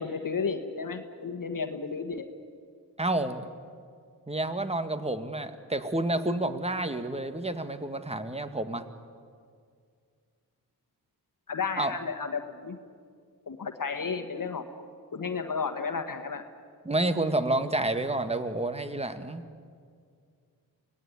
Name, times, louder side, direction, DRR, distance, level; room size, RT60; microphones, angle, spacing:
voice 1, 0.0-2.3 11.5-12.8 13.5-14.6 15.1-16.4, left 5 dB, 55° left, 6 dB, 1.6 m, -32 dB
voice 2, 3.0-3.5 4.3-8.9 11.8-11.9 16.9-19.4, right 2 dB, 15° right, 9 dB, 1.9 m, -29 dB
24.5 x 18.5 x 9.7 m, 2.2 s
cardioid pair, 50°, 39 cm